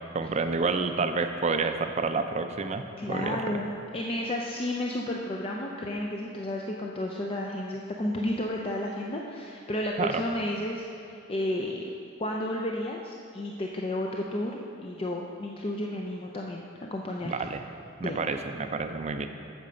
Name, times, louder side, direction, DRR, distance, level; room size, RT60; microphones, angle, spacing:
voice 1, 0.1-3.4 10.0-10.2 17.2-17.6 18.0-19.3, right 4 dB, 35° right, 7 dB, 0.5 m, -29 dB
voice 2, 3.0-11.8 12.2-17.3 18.0-18.2, left 1 dB, 30° left, -1 dB, 0.5 m, -32 dB
8.6 x 6.7 x 5.1 m, 2.5 s
head